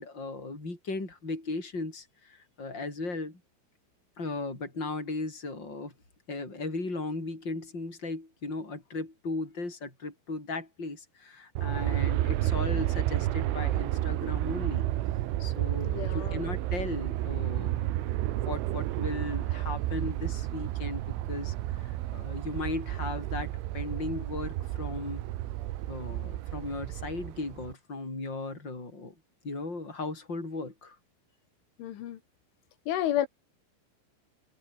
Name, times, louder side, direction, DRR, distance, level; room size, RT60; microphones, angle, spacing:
voice 1, 0.0-3.4 4.2-5.9 6.3-14.9 15.4-21.0 21.3-25.3 25.9-29.1 29.4-31.0, left 3 dB, 20° left, 8.6 m, -37 dB
Aircraft, 11.6-27.7, right 15 dB, 85° right, 3.8 m, -31 dB
voice 2, 15.8-16.4 31.8-32.2 32.9-33.3, left 12 dB, 80° left, 4.4 m, -31 dB
omnidirectional pair, 5.6 m